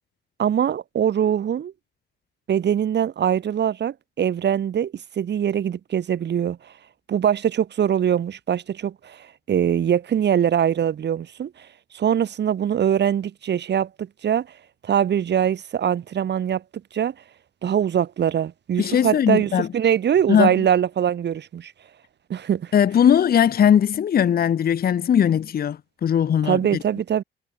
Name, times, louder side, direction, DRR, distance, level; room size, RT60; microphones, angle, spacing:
voice 1, 0.4-1.7 2.5-6.7 7.1-11.7 11.9-14.5 14.8-16.6 16.9-17.1 17.6-21.7 22.3-22.7 26.4-27.2, right 9 dB, 60° right, 5.5 m, -22 dB
voice 2, 18.8-19.7 20.3-20.5 22.7-26.6, left 9 dB, 50° left, 1.1 m, -19 dB
cardioid pair, 90°, 20 cm